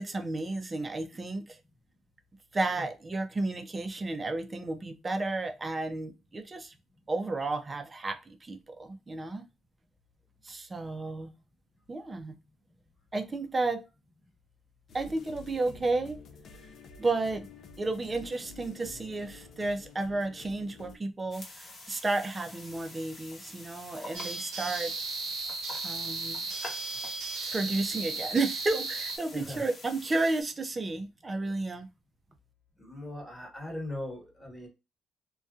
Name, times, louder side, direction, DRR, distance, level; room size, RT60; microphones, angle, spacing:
voice 1, 0.0-1.6 2.5-6.7 7.1-9.4 10.4-11.3 11.9-12.3 13.1-13.8 14.9-16.2 17.0-17.5 17.8-24.9 25.7-26.5 27.5-31.9, right 2 dB, 25° right, 0.5 m, -32 dB
sound 1, 14.9-21.0, left 4 dB, 65° left, 0.4 m, -50 dB
sound 2, 21.3-30.4, left 2 dB, 35° left, 1.0 m, -47 dB
sound 3, 24.1-29.2, right 3 dB, 85° right, 0.8 m, -35 dB
voice 2, 29.3-29.7 32.8-34.7, left 1 dB, 5° left, 1.2 m, -39 dB
2.6 x 2.2 x 2.3 m
cardioid pair, 90°, 0 cm